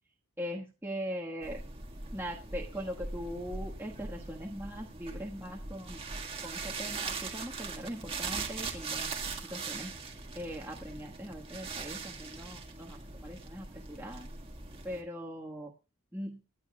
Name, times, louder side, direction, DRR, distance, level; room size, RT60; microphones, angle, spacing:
voice 1, 0.4-1.6 2.1-6.0 6.4-9.1 9.5-9.9 10.3-14.3 14.8-15.7 16.1-16.4, equal, 10° right, -2 dB, 1.5 m, -40 dB
sound 1, 1.4-15.0, right 4 dB, 25° right, 1.8 m, -41 dB
25.5 x 8.9 x 2.3 m, 0.31 s
head